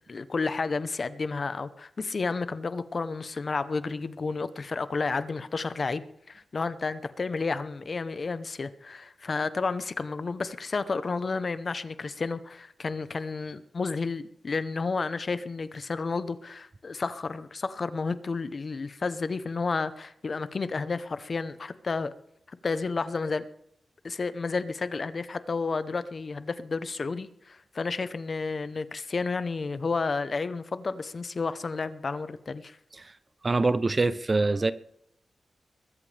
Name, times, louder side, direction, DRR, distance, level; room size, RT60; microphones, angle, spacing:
voice 1, 0.0-22.1 22.6-23.4 24.0-32.8, left 4 dB, 40° left, 0.8 m, -31 dB
voice 2, 33.4-34.7, right 3 dB, 30° right, 0.6 m, -24 dB
21.5 x 14.0 x 3.4 m
wide cardioid pair, 160°, 0 cm